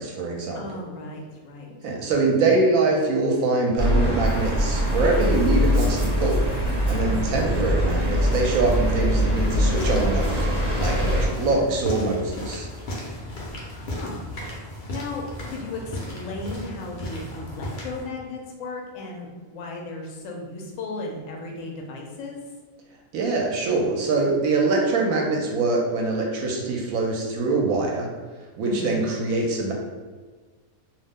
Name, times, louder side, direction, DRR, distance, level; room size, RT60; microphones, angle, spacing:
voice 1, 0.0-0.6 1.8-6.4 6.9-10.4 10.8-12.7 23.1-28.1 28.6-29.7, right 3 dB, 75° right, 0 dB, 1.0 m, -23 dB
voice 2, 0.5-1.7 7.0-7.4 11.4-11.7 13.7-14.2 14.9-22.4 28.6-29.0, left 3 dB, 70° left, 0 dB, 0.9 m, -35 dB
sound 1, 3.8-11.3, equal, 40° right, 0.7 m, -23 dB
sound 2, 9.7-18.0, left 1 dB, 55° left, 0.6 m, -34 dB
2.5 x 2.0 x 3.4 m, 1.4 s
omnidirectional pair, 1.5 m